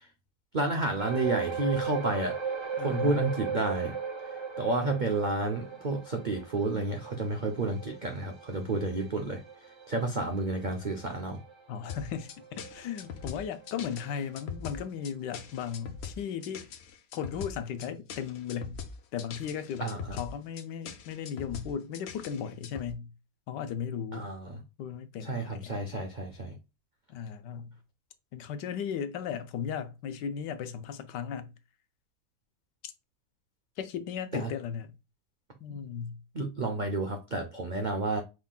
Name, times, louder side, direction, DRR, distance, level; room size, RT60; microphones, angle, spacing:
voice 1, 0.5-2.4 2.8-3.9 4.6-9.4 9.9-11.4 19.8-20.0 24.1-24.6 25.2-26.5 34.3-34.5 36.3-38.2, right 2 dB, 85° right, 0.4 m, -30 dB
sound 1, 1.0-13.7 14.0-14.2 14.8-14.9, right 6 dB, 25° right, 0.6 m, -38 dB
voice 2, 2.8-3.2 11.7-16.7 17.1-18.8 19.1-23.1 23.5-24.3 24.8-25.7 27.1-27.7 28.3-31.5 32.8-32.9 33.8-34.9 35.6-36.2, left 7 dB, 85° left, 1.3 m, -36 dB
sound 2, 11.9-22.9, left 6 dB, 65° left, 0.6 m, -42 dB
5.5 x 3.7 x 2.3 m
omnidirectional pair, 1.8 m